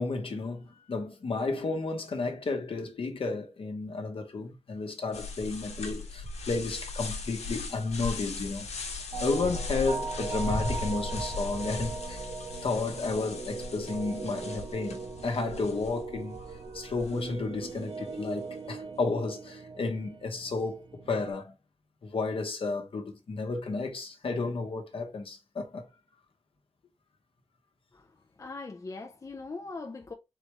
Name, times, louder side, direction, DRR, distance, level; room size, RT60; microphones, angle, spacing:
voice 1, 0.0-12.2 12.6-16.4 16.7-21.5 22.0-25.9, left 3 dB, 55° left, 1.0 m, -32 dB
sound 1, 5.1-17.7, left 2 dB, 85° left, 1.1 m, -38 dB
sound 2, 9.1-21.3, right 4 dB, 40° right, 0.6 m, -40 dB
voice 2, 28.4-30.1, left 3 dB, 30° left, 0.5 m, -40 dB
4.1 x 3.3 x 3.0 m
wide cardioid pair, 165°, 11 cm